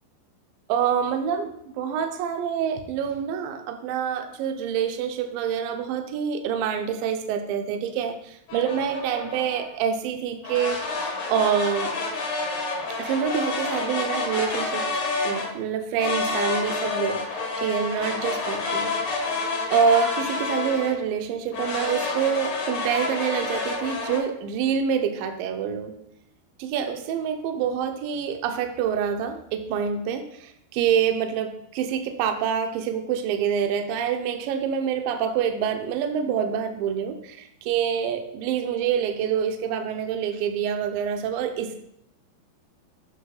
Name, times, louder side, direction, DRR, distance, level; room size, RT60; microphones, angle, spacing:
voice 1, 0.7-10.8 11.3-11.9 13.0-18.9 19.7-25.9 26.6-41.8, right 7 dB, 85° right, 6 dB, 2.0 m, -26 dB
sound 1, 8.5-9.7 10.4-15.5 16.0-21.0 21.5-24.2, left 3 dB, 55° left, 2.6 m, -29 dB
8.1 x 6.5 x 3.9 m, 0.77 s
omnidirectional pair, 5.0 m